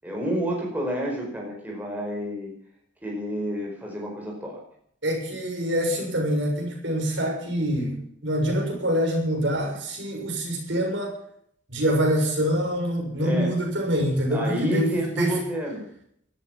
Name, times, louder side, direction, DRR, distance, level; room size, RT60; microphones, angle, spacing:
voice 1, 0.0-2.5 3.0-4.6 13.2-13.5 14.3-15.8, equal, 10° right, -1 dB, 4.9 m, -29 dB
voice 2, 5.0-11.1 11.7-15.4, equal, 60° right, 0 dB, 6.6 m, -25 dB
17.5 x 13.5 x 5.9 m, 0.67 s
head